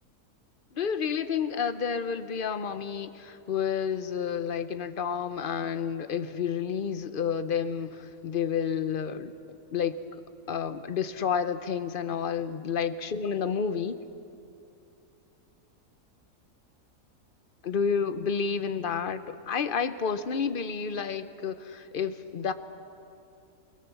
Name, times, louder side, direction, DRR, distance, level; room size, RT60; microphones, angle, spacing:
voice 1, 0.7-9.3 9.7-10.2 10.5-13.9 17.6-22.5, left 7 dB, 45° left, 11 dB, 0.8 m, -30 dB
24.5 x 22.0 x 7.1 m, 2.7 s
omnidirectional pair, 1.7 m